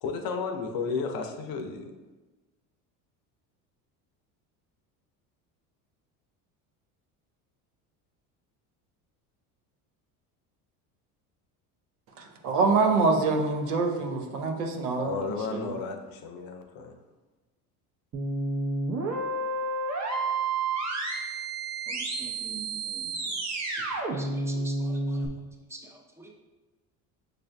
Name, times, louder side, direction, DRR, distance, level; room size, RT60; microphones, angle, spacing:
voice 1, 0.0-1.9 15.0-17.0, left 5 dB, 50° left, 5 dB, 0.6 m, -33 dB
voice 2, 12.2-15.1 15.5-15.7, right 4 dB, 85° right, 3 dB, 0.7 m, -25 dB
sound 1, 18.1-25.3, right 3 dB, 35° right, 0.8 m, -30 dB
voice 3, 21.9-23.4 23.7-25.3 25.7-26.3, right 3 dB, 5° right, 1 dB, 0.4 m, -47 dB
6.4 x 2.5 x 2.2 m, 1.2 s
hypercardioid pair, 80°, 45 cm